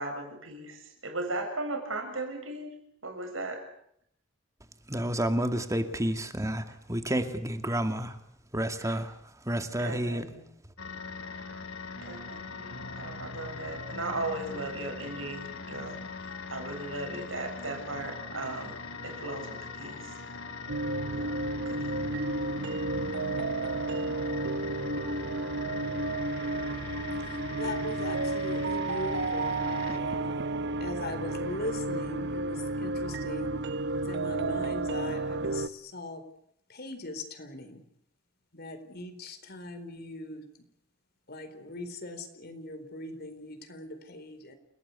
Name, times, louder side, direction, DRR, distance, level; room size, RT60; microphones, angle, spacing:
voice 1, 0.0-2.8 3.0-3.6 8.8-9.0 9.8-10.5 12.0-18.8 19.0-20.2 21.2-21.4 21.7-21.9, right 2 dB, 90° right, 7.5 m, -37 dB
voice 2, 4.9-8.2 8.5-10.3, right 1 dB, 15° right, 2.3 m, -30 dB
sound 1, 10.8-30.0, left 4 dB, 70° left, 2.9 m, -41 dB
sound 2, 20.7-35.7, right 2 dB, 60° right, 1.1 m, -32 dB
voice 3, 27.2-30.4 30.8-33.5 34.1-36.2 36.7-37.8 38.5-40.4 41.3-44.6, left 2 dB, 55° left, 4.4 m, -40 dB
29.5 x 18.5 x 8.4 m
head